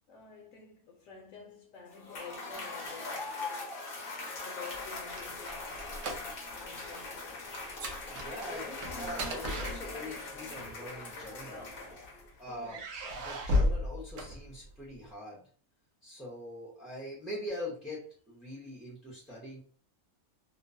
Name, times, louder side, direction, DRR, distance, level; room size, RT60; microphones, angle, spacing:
voice 1, 0.1-3.5 4.4-7.5 10.6-10.7 12.0-12.2 12.4-12.8, left 5 dB, 70° left, 0.9 m, -50 dB
Cheering / Applause / Crowd, 1.9-12.4, left 3 dB, 55° left, 0.6 m, -41 dB
sound 1, 4.7-6.6 6.9-7.1 7.5-10.3 11.2-12.1 12.6-14.9, left 1 dB, 65° right, 0.8 m, -34 dB
voice 2, 8.1-11.7 12.4-12.8 13.1-15.4 16.0-19.6, left 1 dB, ahead, 0.3 m, -43 dB
2.9 x 2.0 x 2.5 m
omnidirectional pair, 1.5 m